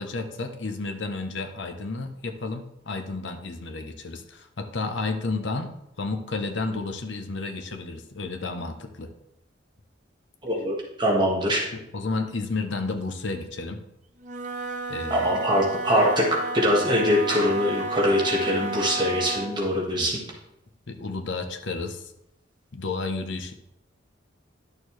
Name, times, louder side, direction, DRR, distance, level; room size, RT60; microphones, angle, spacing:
voice 1, 0.0-5.7 6.0-9.1 11.7-13.8 14.9-15.3 19.9-20.1 20.9-22.1 22.7-23.5, left 3 dB, 65° left, 6 dB, 0.9 m, -31 dB
voice 2, 10.4-11.6 15.1-16.3 16.5-20.2, equal, 25° right, -2 dB, 1.6 m, -23 dB
Wind instrument woodwind instrument, 14.2-19.6, right 2 dB, 40° right, 0.8 m, -32 dB
11.0 x 6.5 x 3.2 m, 0.84 s
head